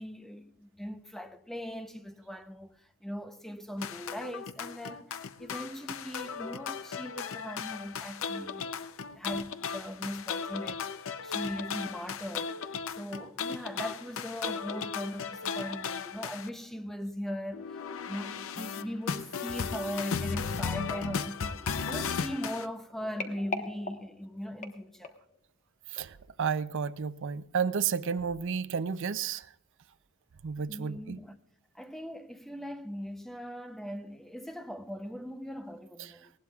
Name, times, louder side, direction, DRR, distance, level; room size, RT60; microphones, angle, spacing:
voice 1, 0.0-10.9 11.2-21.6 21.9-25.1 30.7-31.4 31.7-36.3, equal, ahead, 0.7 m, -40 dB
sound 1, 3.8-16.5 17.5-22.7, left 6 dB, 65° left, 0.6 m, -36 dB
sound 2, 20.3-25.4 26.0-26.2 26.5-26.6, left 3 dB, 35° left, 1.2 m, -43 dB
voice 2, 25.9-29.5 30.4-31.2, right 6 dB, 60° right, 0.5 m, -32 dB
19.5 x 17.5 x 2.4 m
head